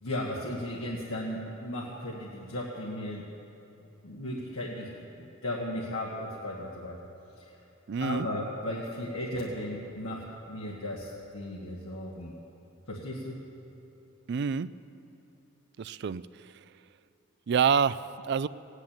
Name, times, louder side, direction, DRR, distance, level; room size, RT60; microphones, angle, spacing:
voice 1, 0.0-3.3 4.0-4.9 5.2-7.1 7.4-7.5 8.0-12.4 12.9-13.4, left 1 dB, 80° left, -3 dB, 1.4 m, -36 dB
voice 2, 7.9-8.3 14.3-14.7 15.8-16.2 17.5-18.0 18.3-18.5, right 6 dB, 55° right, 16 dB, 0.3 m, -26 dB
16.5 x 9.8 x 8.8 m, 3.0 s
head